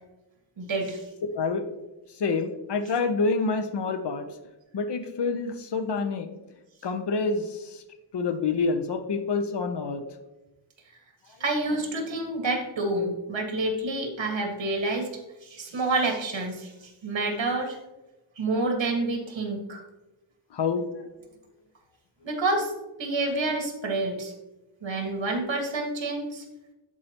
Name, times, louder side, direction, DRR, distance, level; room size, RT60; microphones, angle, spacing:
voice 1, 0.6-1.0 11.4-15.1 15.4-17.8 18.4-19.8 22.2-22.7 23.0-24.3 24.8-26.4, right 2 dB, 70° right, 2 dB, 1.8 m, -28 dB
voice 2, 2.2-4.3 4.7-6.3 6.8-7.5 8.1-10.0 20.5-20.9, left 4 dB, 60° left, 7 dB, 0.8 m, -27 dB
12.0 x 4.7 x 3.0 m, 1.0 s
wide cardioid pair, 150°, 47 cm